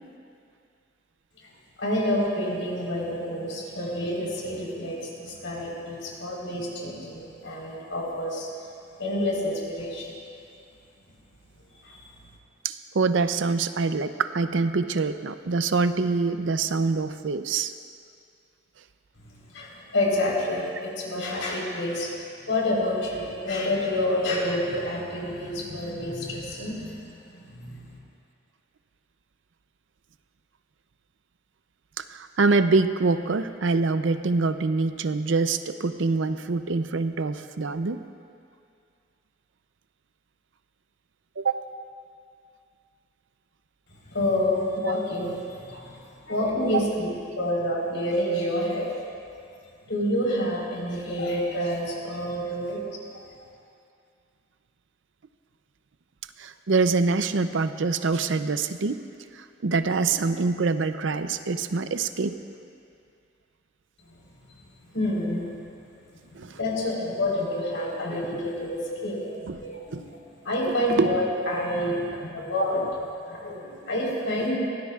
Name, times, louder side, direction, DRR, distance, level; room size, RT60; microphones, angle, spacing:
voice 1, 1.8-8.5 9.0-10.1 11.8-12.0 19.5-22.1 22.5-27.1 27.4-27.8 44.1-46.0 46.3-47.1 47.4-48.9 49.9-52.8 64.9-65.5 66.3-70.0 70.4-72.8 73.3-74.5, left 1 dB, 85° left, -3 dB, 4.1 m, -28 dB
voice 2, 12.6-17.7 32.0-38.0 41.4-41.6 44.8-44.9 56.4-59.0 59.3-62.4 66.3-66.6 69.5-69.6 69.9-70.0 71.0-71.1, right 4 dB, 75° right, 10 dB, 0.6 m, -25 dB
23.5 x 17.0 x 2.4 m, 2.4 s
head